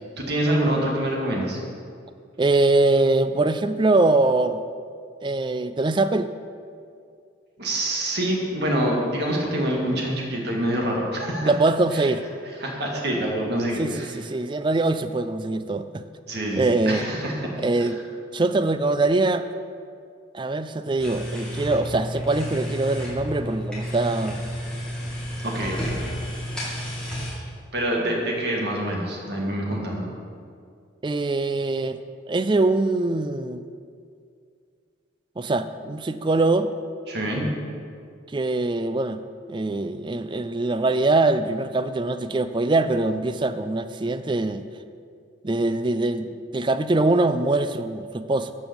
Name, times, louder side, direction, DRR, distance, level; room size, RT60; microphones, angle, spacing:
voice 1, 0.2-1.6 7.6-11.5 11.9-12.1 12.6-14.1 16.3-17.9 25.4-26.0 27.7-30.1 37.1-37.4, right 1 dB, 55° right, -2 dB, 2.2 m, -26 dB
voice 2, 2.4-4.6 5.2-6.3 11.4-12.2 13.8-16.0 16.6-17.1 17.6-18.0 18.3-19.5 20.3-24.4 31.0-32.0 32.3-33.6 35.4-36.7 38.3-39.2 39.5-44.6 45.4-48.5, right 2 dB, 25° right, 11 dB, 0.4 m, -23 dB
sound 1, 21.0-27.3, equal, 5° left, 2.4 m, -31 dB
13.0 x 5.5 x 7.1 m, 2.3 s
head